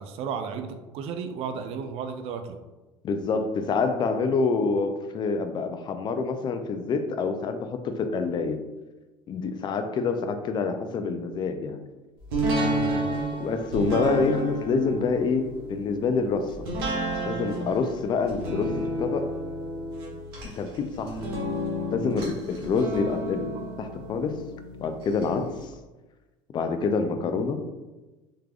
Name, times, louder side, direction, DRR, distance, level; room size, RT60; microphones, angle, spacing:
voice 1, 0.0-2.6 12.5-13.1, right 6 dB, 55° right, 7 dB, 0.4 m, -34 dB
voice 2, 3.0-8.6 9.3-11.8 13.4-16.5 17.2-19.3 20.5-21.2 21.9-24.4 24.8-25.7 26.5-27.6, left 4 dB, 35° left, 8 dB, 0.4 m, -27 dB
sound 1, 12.3-25.2 25.6-25.7, right 1 dB, 90° right, 1.0 m, -31 dB
3.7 x 3.2 x 2.3 m, 1.1 s
supercardioid pair, 95°, 12 cm